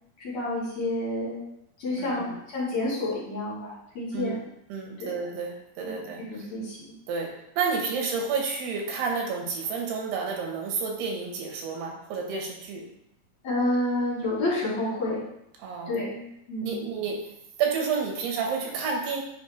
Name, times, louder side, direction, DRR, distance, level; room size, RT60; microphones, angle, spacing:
voice 1, 0.2-1.4 1.8-4.4 5.0-5.1 5.8-6.9 13.4-15.3 15.9-16.8, left 1 dB, 50° left, -8 dB, 3.7 m, -29 dB
voice 2, 2.0-2.3 4.1-4.4 4.7-6.2 7.1-12.9 15.6-15.9 16.6-17.3 17.6-19.2, right 5 dB, 90° right, 1 dB, 3.2 m, -30 dB
9.3 x 4.7 x 3.2 m, 0.78 s
omnidirectional pair, 4.5 m